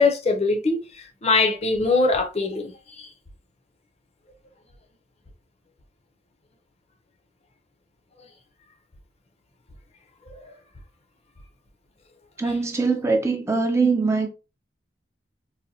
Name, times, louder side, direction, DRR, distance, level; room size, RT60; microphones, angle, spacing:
voice 1, 0.0-3.1 10.3-10.5, left 3 dB, 35° left, 0.5 m, -22 dB
voice 2, 12.4-14.3, right 4 dB, 15° right, 0.3 m, -22 dB
4.0 x 2.2 x 2.6 m
head